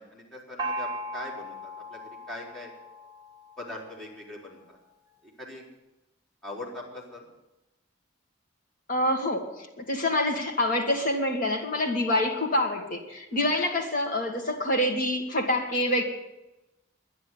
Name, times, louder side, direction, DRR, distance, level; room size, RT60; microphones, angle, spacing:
voice 1, 0.0-2.7 3.6-4.8 5.2-5.7 6.4-7.3 13.3-13.5, left 1 dB, ahead, -6 dB, 4.3 m, -41 dB
Gong, 0.6-4.1, right 1 dB, 20° right, 2.2 m, -37 dB
voice 2, 8.9-16.0, left 1 dB, 40° left, 1 dB, 2.4 m, -26 dB
11.5 x 10.5 x 9.7 m, 0.99 s
head